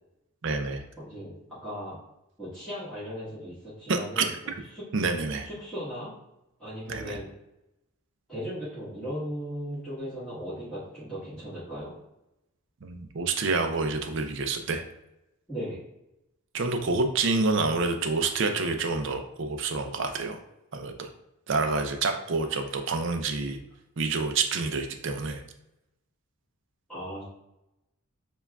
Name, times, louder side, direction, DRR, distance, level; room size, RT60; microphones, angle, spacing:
voice 1, 0.4-0.8 3.9-4.3 4.9-5.5 6.9-7.2 12.8-14.8 16.5-20.4 20.7-21.1 21.5-23.6 24.0-25.4, right 3 dB, 55° right, 6 dB, 0.4 m, -28 dB
voice 2, 1.0-1.3 1.6-2.0 2.4-4.3 4.7-4.8 5.4-6.1 6.6-7.3 8.3-11.9 15.5-15.8 26.9-27.2, equal, 5° left, -14 dB, 1.4 m, -37 dB
6.8 x 2.3 x 2.3 m, 0.88 s
head